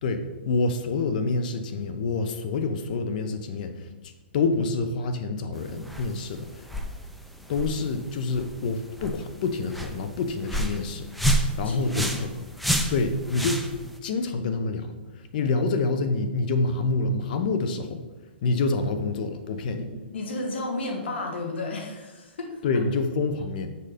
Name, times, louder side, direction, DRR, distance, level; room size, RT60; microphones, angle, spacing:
voice 1, 0.0-6.7 7.5-11.1 11.6-12.1 12.9-13.7 14.0-18.0 18.4-19.8 22.6-23.7, left 3 dB, 45° left, 8 dB, 0.8 m, -27 dB
sound 1, 5.6-14.0, right 1 dB, ahead, 0.4 m, -30 dB
voice 2, 11.6-12.4 19.8-19.9 20.1-22.6, left 2 dB, 75° left, 2 dB, 1.9 m, -33 dB
6.9 x 4.9 x 5.1 m, 1.2 s
hypercardioid pair, 160°, 6 cm